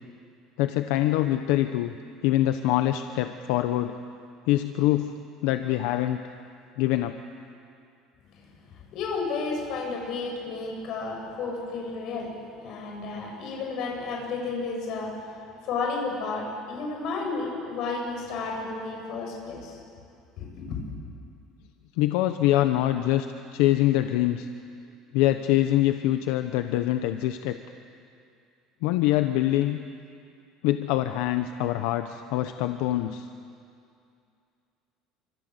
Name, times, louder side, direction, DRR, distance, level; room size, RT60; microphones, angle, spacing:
voice 1, 0.6-1.9 2.2-4.0 4.5-5.1 5.4-6.2 6.8-7.2 22.0-23.3 23.5-24.5 25.1-27.6 28.8-29.8 30.6-33.3, left 14 dB, 75° left, 8 dB, 1.0 m, -24 dB
voice 2, 8.9-12.4 12.6-15.1 15.6-19.8 20.4-20.9, left 4 dB, 50° left, 0 dB, 7.8 m, -32 dB
27.5 x 26.0 x 8.2 m, 2.5 s
cardioid pair, 155°, 0 cm